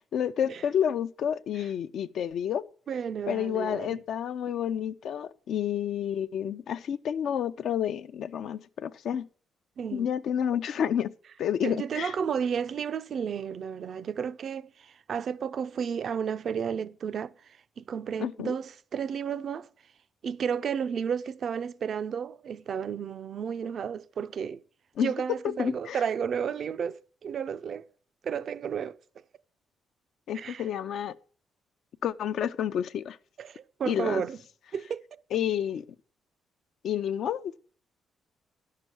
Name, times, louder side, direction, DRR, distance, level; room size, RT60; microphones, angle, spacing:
voice 1, 0.1-2.6 3.3-9.3 9.9-11.1 11.4-12.1 18.2-18.5 25.0-25.1 25.6-26.0 30.3-31.1 32.0-33.2 33.9-34.2 35.3-35.8 36.8-37.6, left 9 dB, 70° left, 0.5 m, -29 dB
voice 2, 2.9-4.0 9.8-10.1 11.6-19.7 20.2-24.6 25.0-27.8 28.2-29.0 30.3-30.7 33.4-34.4 34.7-35.2, right 7 dB, 55° right, 0.5 m, -32 dB
10.5 x 6.7 x 6.1 m
cardioid pair, 90°, 0 cm